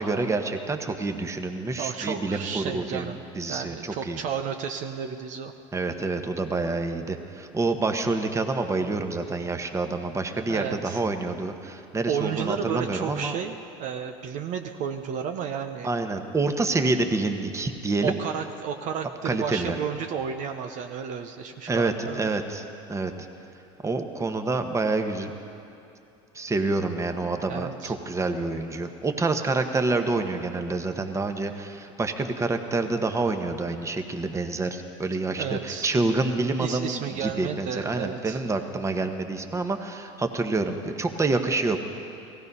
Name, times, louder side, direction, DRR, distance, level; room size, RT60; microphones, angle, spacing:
voice 1, 0.0-4.2 5.7-13.4 15.8-18.1 19.2-19.8 21.7-22.6 22.9-23.1 23.8-25.3 26.3-41.8, right 3 dB, 20° right, 6 dB, 1.2 m, -27 dB
voice 2, 1.7-3.2 3.5-5.5 10.5-11.0 12.1-15.9 18.0-22.3 27.5-27.9 35.4-35.9 36.6-38.4, right 7 dB, 55° right, 6 dB, 0.8 m, -32 dB
17.0 x 15.5 x 5.5 m, 2.7 s
supercardioid pair, 90°, 15 cm